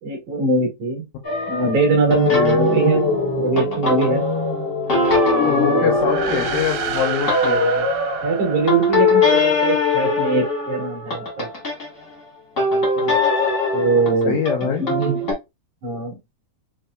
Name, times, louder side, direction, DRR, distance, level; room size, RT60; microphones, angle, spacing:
voice 1, 0.0-1.0 1.5-3.0 3.3-4.2 5.4-5.9 8.2-11.5 13.7-14.4 14.8-15.2 15.8-16.2, right 3 dB, 65° right, 2.1 m, -21 dB
sound 1, 1.2-11.9 12.6-15.3, left 2 dB, 65° left, 0.7 m, -21 dB
voice 2, 2.3-2.6 5.4-7.9 12.7-13.2 14.3-14.8, left 8 dB, 85° left, 2.0 m, -24 dB
sound 2, 5.9-9.6, right 6 dB, 85° right, 2.6 m, -29 dB
5.8 x 2.8 x 2.2 m
omnidirectional pair, 4.5 m